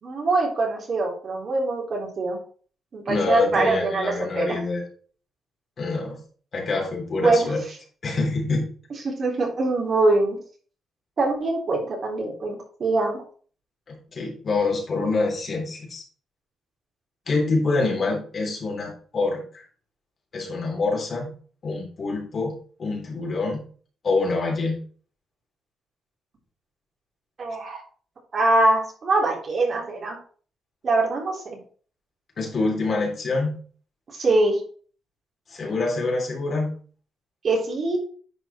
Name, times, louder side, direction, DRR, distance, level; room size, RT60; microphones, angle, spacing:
voice 1, 0.0-2.4 2.9-4.6 7.1-7.5 9.0-10.4 11.2-13.2 27.4-27.8 28.3-30.2 30.8-31.6 34.1-34.6 37.4-38.0, right 2 dB, 45° right, -1 dB, 3.7 m, -23 dB
voice 2, 3.1-4.8 5.8-6.2 6.5-7.6 8.0-8.7 13.9-16.0 17.3-19.6 20.3-21.3 21.6-22.5 22.8-23.6 24.0-24.8 32.4-33.6 35.5-36.7, left 3 dB, 45° left, -1 dB, 3.8 m, -26 dB
10.5 x 5.1 x 4.5 m, 0.43 s
cardioid pair, 105°, 0 cm